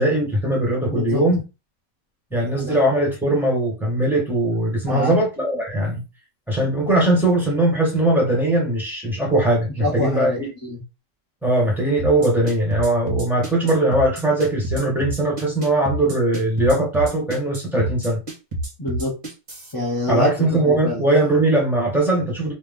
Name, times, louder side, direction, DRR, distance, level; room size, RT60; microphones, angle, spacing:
voice 1, 0.0-1.4 2.3-6.0 6.5-10.5 11.4-18.2 20.1-22.5, right 1 dB, ahead, 1.6 m, -20 dB
voice 2, 0.9-1.2 2.6-2.8 4.9-5.1 9.8-10.8 18.8-19.1 19.7-21.0, left 1 dB, 15° left, 0.9 m, -26 dB
sound 1, 12.0-19.7, right 1 dB, 30° right, 1.2 m, -29 dB
3.2 x 3.0 x 3.7 m
omnidirectional pair, 1.8 m